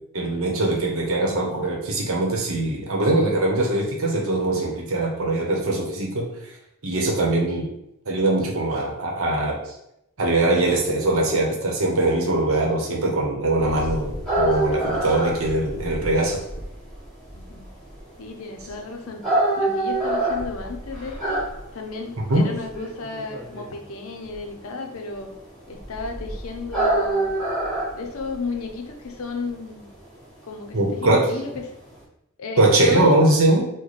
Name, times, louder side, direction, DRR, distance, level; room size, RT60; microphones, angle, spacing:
voice 1, 0.1-6.5 6.8-7.7 8.1-9.7 10.2-16.4 22.3-22.4 30.7-31.3 32.6-33.7, right 2 dB, 70° right, 0 dB, 0.8 m, -21 dB
sound 1, 13.6-32.0, right 2 dB, ahead, 1.3 m, -28 dB
voice 2, 17.3-17.7 18.2-19.2 19.6-21.5 21.7-25.3 25.7-27.3 27.9-29.9 30.5-31.6 32.4-33.1, left 4 dB, 70° left, 3 dB, 0.5 m, -33 dB
3.1 x 2.1 x 4.0 m, 0.82 s
head